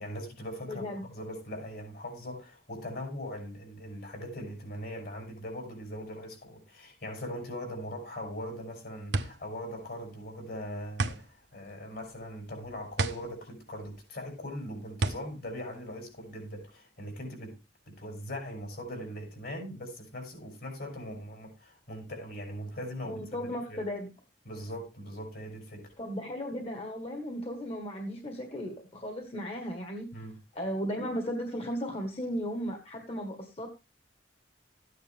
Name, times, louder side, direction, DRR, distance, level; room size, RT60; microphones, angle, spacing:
voice 1, 0.0-17.6 17.9-23.2 23.7-23.8 24.4-25.9 30.1-30.4, equal, 60° left, 6.0 m, -40 dB
voice 2, 0.6-1.1 23.0-24.1 26.0-30.1 30.5-33.7, equal, 35° left, 1.6 m, -35 dB
sound 1, 8.3-16.6, right 3 dB, 85° right, 1.0 m, -35 dB
14.0 x 9.4 x 3.5 m
head